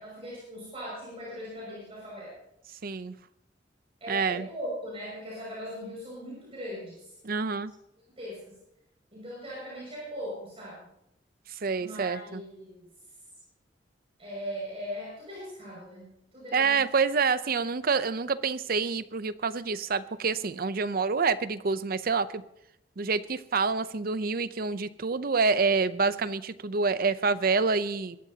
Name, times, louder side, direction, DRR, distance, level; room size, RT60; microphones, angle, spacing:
voice 1, 0.0-2.4 4.0-7.1 8.2-8.4 9.1-10.9 11.8-12.9 14.2-16.9, equal, 35° right, -6 dB, 6.4 m, -39 dB
voice 2, 2.8-3.1 4.1-4.5 7.2-7.7 11.5-12.4 16.5-22.4 23.0-28.2, right 4 dB, 55° right, 14 dB, 0.6 m, -27 dB
22.0 x 13.0 x 2.9 m, 0.80 s
head